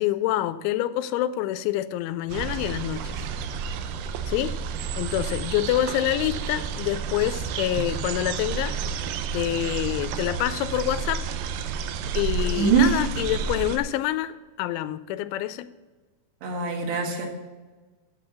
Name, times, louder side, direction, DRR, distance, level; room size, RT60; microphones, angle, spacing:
voice 1, 0.0-3.2 4.3-4.6 5.0-8.8 9.3-11.2 12.1-15.7, left 13 dB, 90° left, 13 dB, 3.0 m, -27 dB
sound 1, 2.3-13.8, right 6 dB, 90° right, 3.1 m, -31 dB
voice 2, 12.6-12.9 16.4-17.3, right 6 dB, 70° right, 2 dB, 3.7 m, -22 dB
8.6 x 7.8 x 7.0 m, 1.3 s
omnidirectional pair, 5.3 m